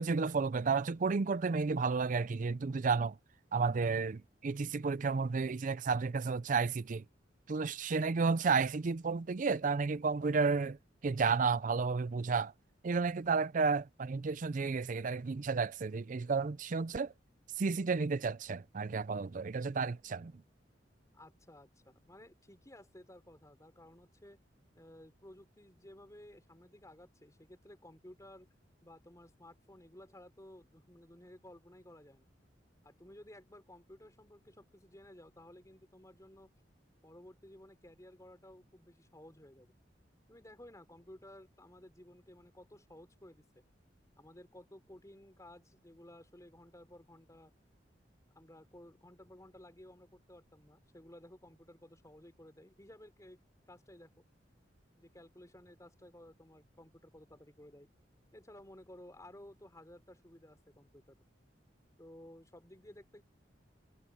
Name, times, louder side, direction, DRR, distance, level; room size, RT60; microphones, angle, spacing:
voice 1, 0.0-3.2 3.5-7.0 7.5-10.8 11.0-12.5 12.8-17.1 17.6-20.3, right 4 dB, 45° right, 0.5 m, -32 dB
voice 2, 21.1-24.4 24.7-28.5 28.8-32.3 32.8-36.5 37.0-39.7 40.3-43.5 44.2-47.5 48.4-53.4 53.7-54.1 55.0-57.9 58.3-61.2 62.0-63.2, left 1 dB, 20° left, 3.7 m, -55 dB
head